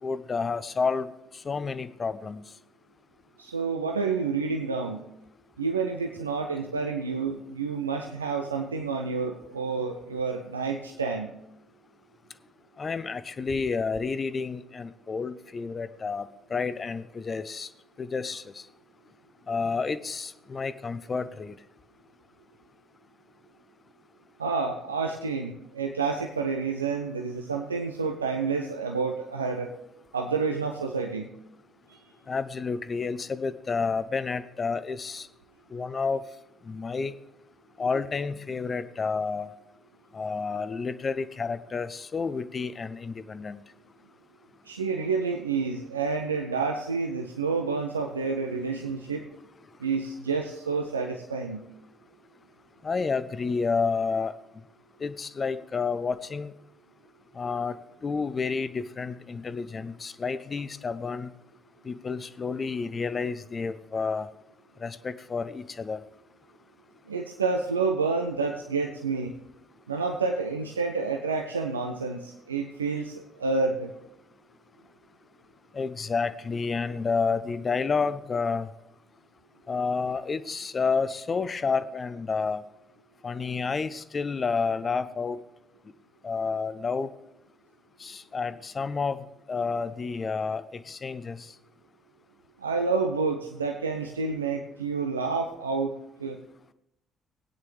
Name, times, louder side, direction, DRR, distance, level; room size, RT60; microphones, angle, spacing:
voice 1, 0.0-1.1 1.4-2.4 12.8-17.7 18.0-18.6 19.5-21.6 32.3-35.3 35.7-36.2 36.7-37.2 37.8-39.5 40.1-43.6 52.8-54.3 55.0-56.5 57.4-61.3 61.8-64.3 64.8-66.0 75.7-78.7 79.7-82.6 83.2-85.4 86.2-87.1 88.0-91.5, left 5 dB, 35° left, 14 dB, 0.5 m, -30 dB
voice 2, 3.4-5.0 5.6-11.3 24.4-29.7 30.1-31.3 31.9-32.1 44.7-49.3 49.8-51.6 67.1-69.4 69.9-73.9 92.6-95.9 96.2-96.4, right 4 dB, 85° right, 3 dB, 0.5 m, -29 dB
18.5 x 9.3 x 3.3 m, 0.84 s
figure-of-eight pair, 45°, 0 cm